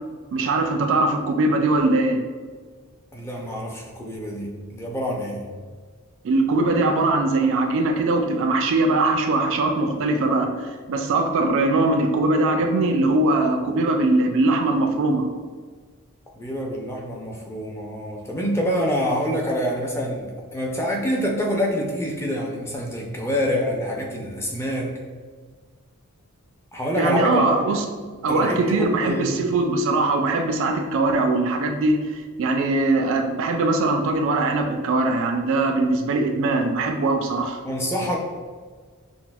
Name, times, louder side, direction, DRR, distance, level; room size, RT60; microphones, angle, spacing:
voice 1, 0.3-2.2 6.2-10.5 10.9-15.3 27.0-27.8 28.2-37.6, right 2 dB, 60° right, 5 dB, 0.3 m, -21 dB
voice 2, 3.1-5.4 16.4-25.0 26.7-27.6 28.3-29.4 37.6-38.2, equal, 10° left, -1 dB, 0.4 m, -26 dB
5.9 x 2.0 x 2.2 m, 1.5 s
head